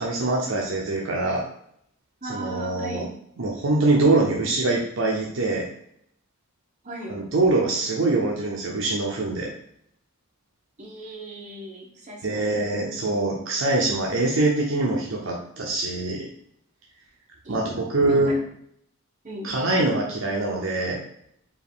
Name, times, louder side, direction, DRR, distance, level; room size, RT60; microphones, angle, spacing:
voice 1, 0.0-1.5 2.3-3.0 3.4-5.7 7.1-9.5 12.2-16.3 17.5-18.3 19.4-21.0, right 2 dB, 60° right, -1 dB, 0.6 m, -24 dB
voice 2, 2.2-3.1 6.8-7.2 10.8-13.1 17.4-17.6 18.0-18.4 19.2-19.5, right 1 dB, 35° right, -2 dB, 1.0 m, -38 dB
4.5 x 2.5 x 3.5 m, 0.69 s
head